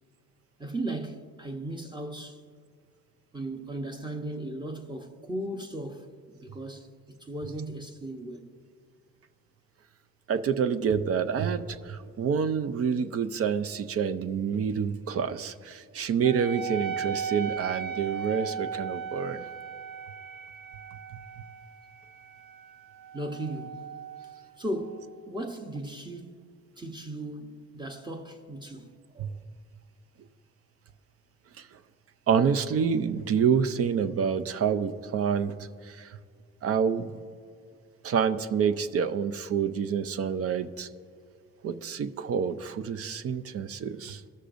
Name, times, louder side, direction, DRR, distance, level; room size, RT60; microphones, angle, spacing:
voice 1, 0.6-2.4 3.3-6.9 7.2-8.5 23.1-23.9 24.6-26.4 26.8-29.4, right 1 dB, 15° right, 0.8 m, -37 dB
voice 2, 10.3-19.5 29.2-29.3 31.6-31.7 32.3-35.5 35.8-36.2 36.6-37.2 38.0-40.9 41.6-44.2, right 7 dB, 50° right, 0.5 m, -27 dB
Wind instrument woodwind instrument, 16.2-25.2, right 7 dB, 80° right, 0.8 m, -37 dB
16.5 x 6.5 x 2.5 m
cardioid pair, 90°, 30 cm